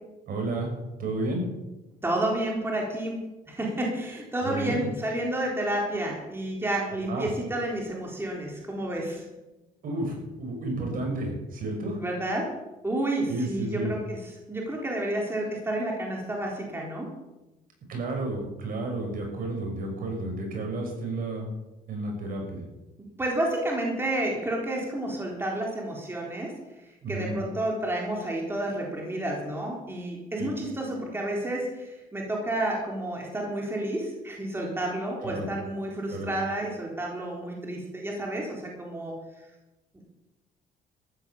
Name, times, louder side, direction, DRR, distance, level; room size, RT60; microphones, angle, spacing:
voice 1, 0.3-0.7 1.0-1.5 4.4-4.8 7.1-7.3 9.8-12.0 13.3-13.9 17.9-21.5 21.9-22.6 27.0-27.4 30.4-30.5 35.2-35.5 36.1-36.3, right 2 dB, 55° right, 2 dB, 6.1 m, -31 dB
voice 2, 2.0-3.2 3.5-9.3 12.0-12.5 12.8-17.1 23.2-26.5 27.1-39.2, right 1 dB, 15° right, -1 dB, 3.8 m, -30 dB
14.0 x 11.5 x 7.1 m, 1.0 s
cardioid pair, 110°, 17 cm